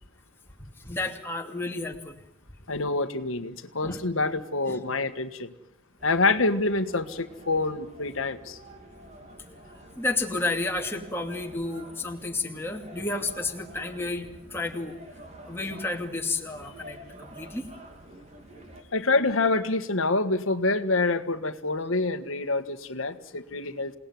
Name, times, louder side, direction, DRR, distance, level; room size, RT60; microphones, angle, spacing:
voice 1, 0.6-2.2 3.8-4.0 4.7-4.8 10.0-15.0 15.5-17.7, left 2 dB, 10° left, 2 dB, 2.5 m, -31 dB
voice 2, 2.7-5.5 6.0-8.6 18.9-24.0, left 3 dB, 90° left, 8 dB, 1.6 m, -26 dB
sound 1, 6.0-18.8, right 1 dB, 35° right, 3.6 m, -48 dB
28.0 x 19.0 x 9.5 m, 0.75 s
head